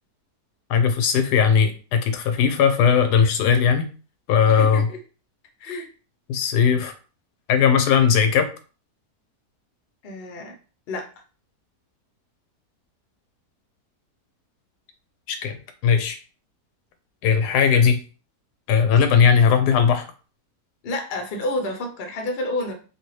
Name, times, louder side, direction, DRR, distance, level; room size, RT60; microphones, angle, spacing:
voice 1, 0.7-3.9 4.3-4.9 6.3-6.9 7.5-8.5 15.3-16.2 17.2-18.0 18.7-20.1, left 7 dB, 90° left, 8 dB, 1.1 m, -18 dB
voice 2, 4.5-5.0 5.6-5.9 10.0-10.5 10.9-11.1 20.8-22.7, left 2 dB, 50° left, 4 dB, 0.8 m, -29 dB
2.8 x 2.7 x 3.1 m, 0.35 s
omnidirectional pair, 1.7 m